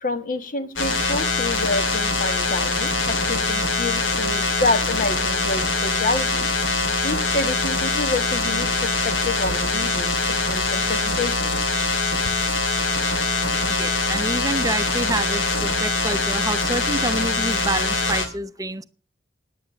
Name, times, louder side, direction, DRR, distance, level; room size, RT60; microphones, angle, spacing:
voice 1, 0.0-6.5 7.0-11.5, left 2 dB, 45° left, 11 dB, 1.4 m, -28 dB
sound 1, 0.8-18.3, left 3 dB, 85° left, 3.0 m, -23 dB
voice 2, 13.7-18.8, right 2 dB, 20° right, 13 dB, 0.7 m, -28 dB
10.0 x 10.0 x 6.2 m, 0.35 s
head